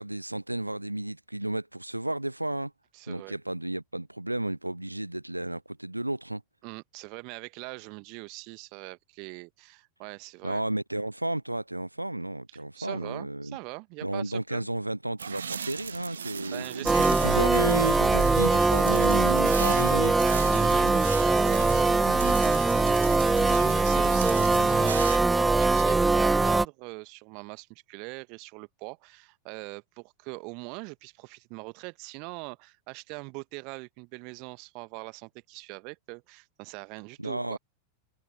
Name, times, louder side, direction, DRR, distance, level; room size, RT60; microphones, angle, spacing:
voice 1, 0.0-2.7 3.1-6.4 10.4-13.6 14.0-20.2 37.2-37.6, right 1 dB, 85° right, 0.5 m, -32 dB
voice 2, 2.9-3.4 6.6-10.6 12.7-14.7 16.5-17.3 20.5-37.6, right 32 dB, 45° right, 1.5 m, -42 dB
sound 1, 15.2-25.2, right 7 dB, 70° right, 1.5 m, -37 dB
sound 2, 16.9-26.7, right 3 dB, 10° right, 0.3 m, -22 dB
figure-of-eight pair, 90°, 0 cm